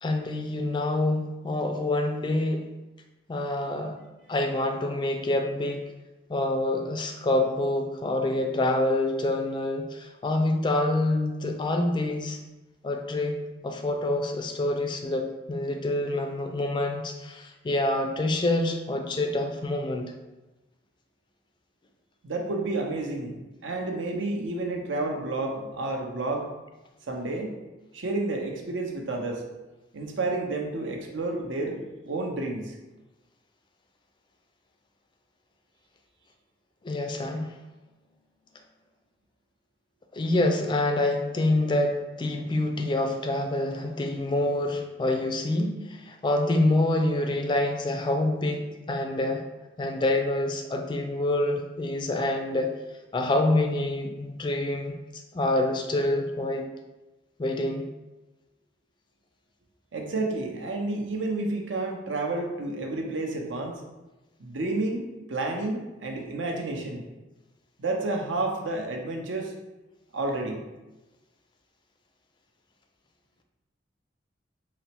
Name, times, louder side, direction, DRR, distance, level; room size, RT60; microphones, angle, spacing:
voice 1, 0.0-2.7 3.3-4.0 4.3-5.8 6.3-12.4 12.8-20.1 36.8-37.6 40.1-49.4 49.8-52.7 53.1-56.7 57.4-57.8, left 1 dB, 25° left, 4 dB, 0.3 m, -26 dB
voice 2, 22.2-23.4 23.6-26.5 27.1-27.6 27.9-29.4 29.9-32.7 59.9-63.8 64.4-67.1 67.8-69.5 70.1-70.6, right 2 dB, 85° right, 2 dB, 0.6 m, -30 dB
3.9 x 2.0 x 4.3 m, 1.1 s
head